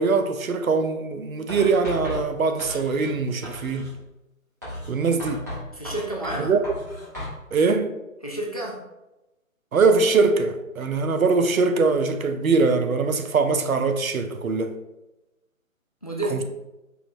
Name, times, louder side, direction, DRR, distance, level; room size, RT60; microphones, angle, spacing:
voice 1, 0.0-3.9 4.9-5.5 6.4-6.6 7.5-7.9 9.7-14.7 16.3-16.4, right 4 dB, 80° right, 0.6 m, -22 dB
Writing, 1.5-3.2 3.4-4.0 4.6-7.4, left 1 dB, 15° right, 0.7 m, -35 dB
voice 2, 5.7-6.5 8.2-8.8 16.0-16.4, right 2 dB, 30° left, 0.4 m, -30 dB
4.7 x 3.1 x 2.6 m
figure-of-eight pair, 145°, 41 cm